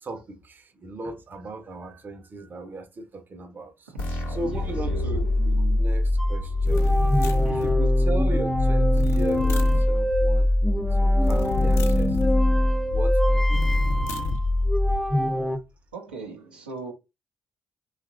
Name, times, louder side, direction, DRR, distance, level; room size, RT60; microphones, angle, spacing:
voice 1, 0.0-3.9 4.3-7.0 7.5-12.2 12.9-14.0, right 2 dB, 40° right, 0.6 m, -37 dB
voice 2, 3.9-5.1 7.2-7.6 15.9-16.9, right 4 dB, 90° right, 0.5 m, -41 dB
sound 1, 4.0-15.4, left 1 dB, 75° left, 0.9 m, -23 dB
sound 2, 6.2-15.6, equal, 5° left, 0.5 m, -27 dB
sound 3, 6.7-7.8 8.9-9.9 11.2-12.4 13.5-14.4, left 4 dB, 60° left, 0.4 m, -32 dB
2.8 x 2.4 x 2.4 m
figure-of-eight pair, 40°, 5 cm